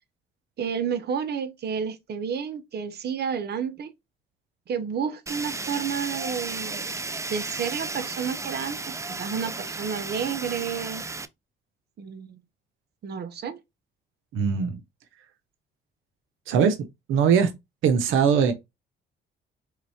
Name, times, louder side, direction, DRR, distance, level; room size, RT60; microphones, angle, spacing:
voice 1, 0.6-3.9 4.7-6.9 7.2-11.0 12.0-12.4 13.0-13.6, right 7 dB, 55° right, 0.8 m, -31 dB
Fire, 5.3-11.3, right 3 dB, 15° right, 0.4 m, -34 dB
voice 2, 14.3-14.8 16.5-16.8 17.1-17.5 17.8-18.5, right 7 dB, 90° right, 0.7 m, -20 dB
4.8 x 3.4 x 2.8 m
cardioid pair, 90°, 20 cm